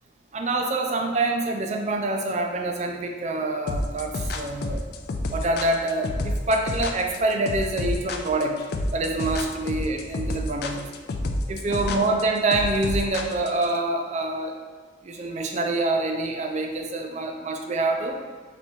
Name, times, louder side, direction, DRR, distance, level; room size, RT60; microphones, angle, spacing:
voice 1, 0.3-4.8 5.3-8.6 8.9-10.9 11.5-14.5 15.0-18.2, right 2 dB, 35° right, 3 dB, 0.4 m, -26 dB
sound 1, 3.7-13.7, left 2 dB, 55° left, 0.3 m, -29 dB
4.2 x 3.4 x 2.9 m, 1.5 s
head